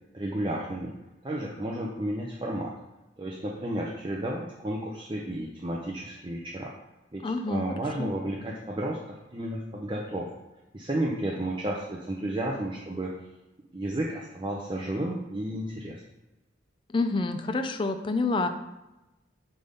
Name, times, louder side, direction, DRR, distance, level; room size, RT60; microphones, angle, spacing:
voice 1, 0.1-0.9 1.2-2.7 3.2-6.7 7.1-10.3 10.7-13.1 13.7-16.0, right 1 dB, 25° right, -2 dB, 0.6 m, -32 dB
voice 2, 7.2-7.6 8.0-8.1 16.9-18.5, left 3 dB, 25° left, 7 dB, 0.4 m, -27 dB
7.8 x 3.5 x 5.3 m, 0.98 s
head